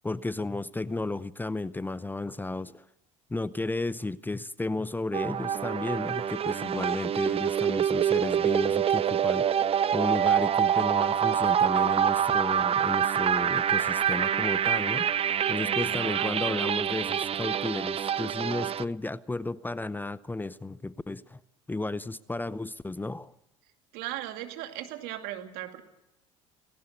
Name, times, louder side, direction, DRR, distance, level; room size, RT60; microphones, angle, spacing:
voice 1, 0.0-2.8 3.3-15.1 15.5-21.4 21.7-23.3, left 2 dB, 10° left, 17 dB, 0.6 m, -33 dB
sound 1, 5.1-18.8, right 9 dB, 35° right, 0.7 m, -26 dB
sound 2, 10.1-15.9 16.2-16.4 16.8-16.9 20.2-20.3, right 15 dB, 55° right, 2.7 m, -50 dB
voice 2, 15.6-16.6 23.9-25.8, right 13 dB, 70° right, 6 dB, 2.4 m, -38 dB
19.0 x 17.5 x 8.0 m, 0.91 s
hypercardioid pair, 75°, 16 cm